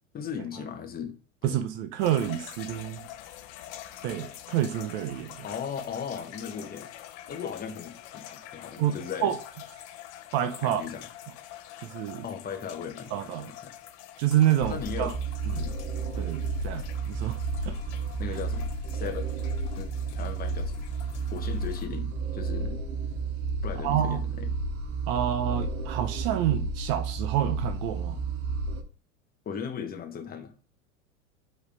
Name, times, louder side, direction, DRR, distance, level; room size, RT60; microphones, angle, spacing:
voice 1, 0.1-1.2 1.4-1.6 5.4-6.9 7.3-9.3 10.6-11.0 12.2-13.7 14.6-15.1 15.5-15.8 18.2-19.3 19.8-20.8 21.3-22.8 23.6-24.5 29.4-30.5, left 7 dB, 25° left, 1.0 m, -37 dB
voice 2, 1.4-3.1 4.0-5.4 8.8-9.0 9.2-9.4 10.3-10.8 11.8-12.2 13.1-13.5 14.2-15.1 15.5-15.6 16.2-17.4 17.6-17.8 23.8-24.2 25.1-28.2, right 11 dB, 55° right, 0.7 m, -28 dB
sound 1, 2.0-21.9, left 12 dB, 50° left, 0.8 m, -46 dB
sound 2, 14.6-28.8, right 4 dB, 75° right, 1.1 m, -32 dB
4.7 x 3.3 x 3.3 m
hypercardioid pair, 100°, 39 cm